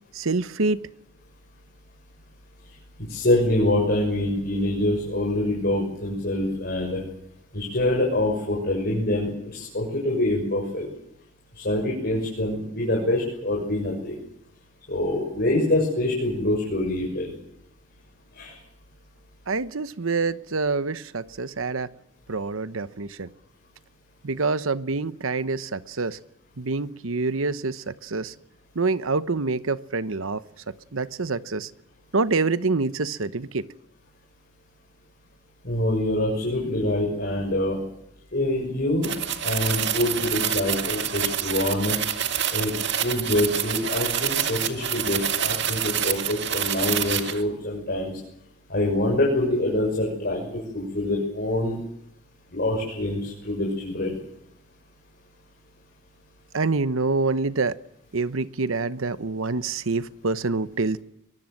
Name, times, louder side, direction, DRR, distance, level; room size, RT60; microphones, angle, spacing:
voice 1, 0.1-0.8 19.5-21.9 22.3-23.3 24.2-26.2 26.6-28.3 28.7-30.4 30.9-31.7 32.1-33.7 56.5-57.8 58.1-61.0, right 3 dB, 90° right, 14 dB, 1.0 m, -26 dB
voice 2, 3.0-7.0 7.5-10.9 11.6-14.2 14.9-17.3 18.3-18.6 35.6-37.8 38.3-39.1 39.4-42.0 42.5-42.7 43.0-48.1 48.7-50.5 50.7-51.8 52.5-54.2, left 1 dB, 50° left, -1 dB, 6.8 m, -25 dB
sound 1, 39.0-47.4, right 9 dB, 60° right, 2.1 m, -27 dB
23.0 x 23.0 x 7.8 m, 0.80 s
head